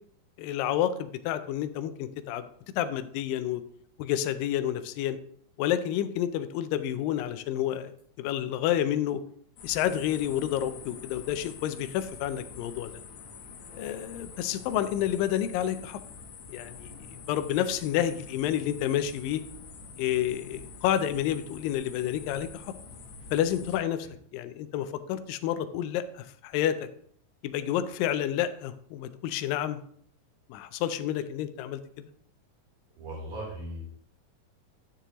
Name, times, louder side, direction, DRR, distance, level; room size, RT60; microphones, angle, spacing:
voice 1, 0.4-2.4 2.8-3.6 4.0-5.2 5.6-7.9 8.2-9.2 9.6-12.9 13.7-16.0 16.5-19.4 20.0-22.7 23.3-24.1 24.3-26.9 27.4-29.8 30.5-32.1, left 11 dB, 90° left, 10 dB, 2.3 m, -29 dB
sound 1, 9.6-23.8, left 5 dB, 65° left, 2.0 m, -46 dB
voice 2, 33.0-33.8, right 1 dB, 85° right, -4 dB, 5.1 m, -38 dB
10.5 x 6.8 x 2.9 m, 0.62 s
omnidirectional pair, 3.9 m